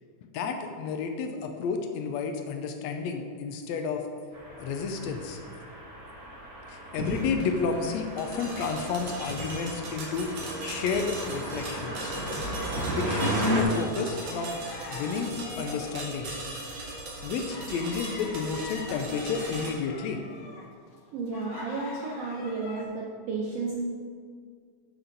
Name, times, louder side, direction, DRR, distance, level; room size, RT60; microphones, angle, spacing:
voice 1, 0.3-4.0 4.6-5.4 6.7-10.3 10.6-12.1 12.9-14.6 14.9-16.3 17.2-20.2, left 5 dB, 85° left, 5 dB, 1.6 m, -31 dB
sound 1, 4.3-13.6, equal, 45° right, 0.8 m, -34 dB
sound 2, 7.0-19.7, right 1 dB, 60° right, 3.1 m, -38 dB
sound 3, 11.5-12.5 12.8-22.8, left 3 dB, 65° left, 1.8 m, -45 dB
voice 2, 21.1-23.8, right 4 dB, 80° right, -2 dB, 1.4 m, -32 dB
14.0 x 5.9 x 4.0 m, 2.1 s
omnidirectional pair, 3.9 m